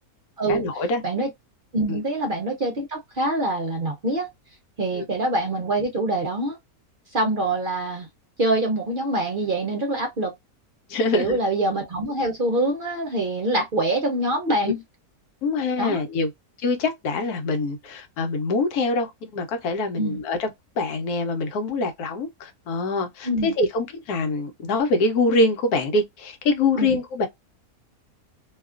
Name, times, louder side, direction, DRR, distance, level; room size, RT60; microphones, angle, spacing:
voice 1, 0.5-1.0 1.9-2.0 4.9-5.0 10.9-11.4 14.6-14.7 15.4-16.3 16.6-20.5 20.8-27.3, left 3 dB, 90° left, 1.2 m, -24 dB
voice 2, 1.7-4.3 4.8-6.6 7.1-8.1 8.4-10.3 11.1-14.8 15.8-16.0 20.0-20.2 23.2-23.5 26.8-27.0, right 2 dB, 50° right, 0.6 m, -25 dB
2.8 x 2.3 x 2.4 m
omnidirectional pair, 1.6 m